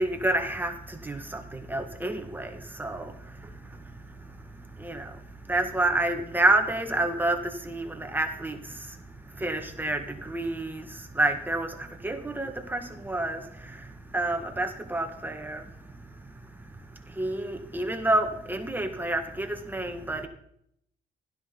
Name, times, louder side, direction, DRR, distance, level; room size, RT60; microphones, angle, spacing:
voice 1, 0.0-3.9 4.6-5.2 5.5-9.0 9.3-15.6 17.1-20.3, right 2 dB, 10° right, 1.5 m, -29 dB
16.0 x 13.0 x 3.9 m
cardioid pair, 105°, 16 cm